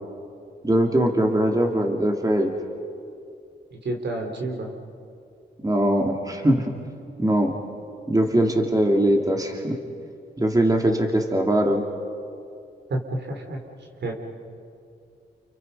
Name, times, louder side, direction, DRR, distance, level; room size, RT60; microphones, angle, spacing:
voice 1, 0.6-2.5 5.6-6.7 7.2-7.5 8.1-9.8 10.4-11.9, right 1 dB, 20° right, 2 dB, 2.7 m, -21 dB
voice 2, 3.7-4.7 12.9-13.6 14.0-14.2, right 2 dB, 65° right, 2 dB, 3.7 m, -29 dB
29.5 x 28.5 x 5.6 m, 2.5 s
cardioid pair, 60°, 19 cm